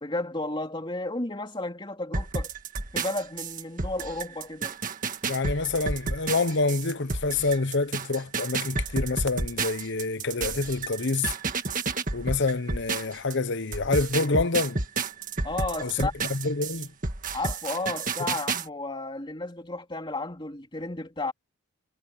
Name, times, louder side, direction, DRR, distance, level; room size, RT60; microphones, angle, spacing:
voice 1, 0.0-2.5 2.9-4.8 15.4-16.1 17.3-21.3, left 2 dB, 20° left, 3.4 m, -33 dB
sound 1, 2.1-13.3 13.7-18.7, right 4 dB, 40° right, 1.8 m, -31 dB
voice 2, 5.3-11.3 12.1-14.8 15.8-16.9, left 3 dB, 55° left, 0.9 m, -27 dB
head